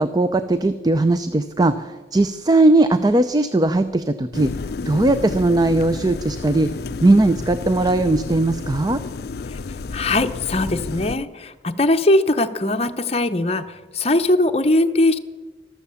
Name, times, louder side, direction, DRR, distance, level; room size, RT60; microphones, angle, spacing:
voice 1, 0.0-4.5 4.9-6.7 7.0-9.0, right 2 dB, 20° right, 11 dB, 0.5 m, -18 dB
sound 1, 4.3-11.1, left 4 dB, 60° left, 0.4 m, -31 dB
voice 2, 9.9-13.6 13.9-15.2, left 2 dB, 35° left, 8 dB, 0.8 m, -20 dB
14.0 x 13.0 x 7.0 m, 1.3 s
head